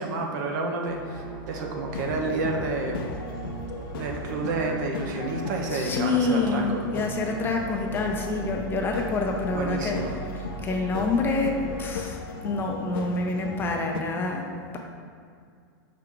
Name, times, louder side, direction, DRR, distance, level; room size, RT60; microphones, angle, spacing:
voice 1, 0.0-3.0 3.9-6.8 9.5-10.2, right 3 dB, 55° right, 2 dB, 0.9 m, -30 dB
sound 1, 0.8-11.9, right 5 dB, 30° right, 0.8 m, -39 dB
sound 2, 1.9-14.0, left 5 dB, 75° left, 0.6 m, -37 dB
voice 2, 5.7-10.0 10.6-14.5, left 3 dB, 20° left, 2 dB, 0.5 m, -27 dB
5.8 x 4.6 x 3.7 m, 2.2 s
supercardioid pair, 145°, 12 cm